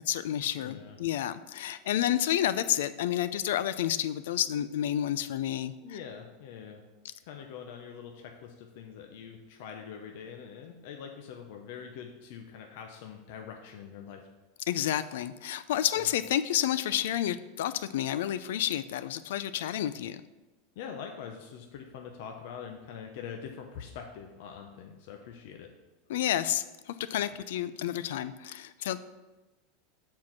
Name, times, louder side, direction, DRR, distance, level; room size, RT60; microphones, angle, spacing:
voice 1, 0.1-6.0 14.7-20.2 26.1-29.0, left 11 dB, 80° left, 14 dB, 0.4 m, -30 dB
voice 2, 0.6-1.0 5.8-6.8 7.2-14.3 20.8-25.7, left 7 dB, 65° left, 3 dB, 0.8 m, -44 dB
7.4 x 4.6 x 5.8 m, 1.1 s
supercardioid pair, 145°, 0 cm